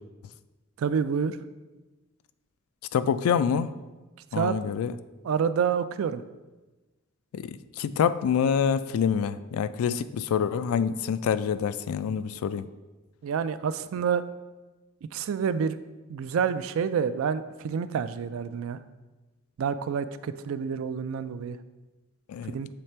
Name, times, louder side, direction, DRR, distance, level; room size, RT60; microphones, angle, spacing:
voice 1, 0.8-1.4 4.3-4.6 5.2-6.2 13.2-14.2 15.1-15.8 16.1-18.8 19.6-21.6 22.5-22.7, right 7 dB, 70° right, 13 dB, 0.3 m, -28 dB
voice 2, 2.9-3.7 4.3-4.9 7.3-12.7 22.3-22.6, left 7 dB, 85° left, 14 dB, 0.3 m, -26 dB
6.9 x 3.3 x 4.4 m, 1.2 s
head